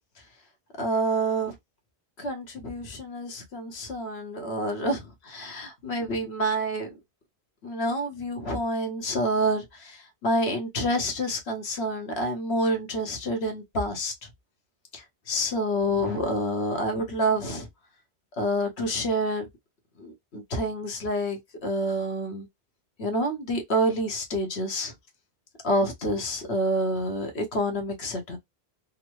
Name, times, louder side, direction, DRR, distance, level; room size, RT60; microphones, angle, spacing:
voice 1, 0.8-1.5 2.2-7.0 7.6-14.1 14.9-17.7 18.4-19.5 20.0-22.5 23.0-24.9 25.6-28.4, right 1 dB, 70° left, 1.3 m, -28 dB
3.7 x 2.1 x 3.0 m
omnidirectional pair, 1.1 m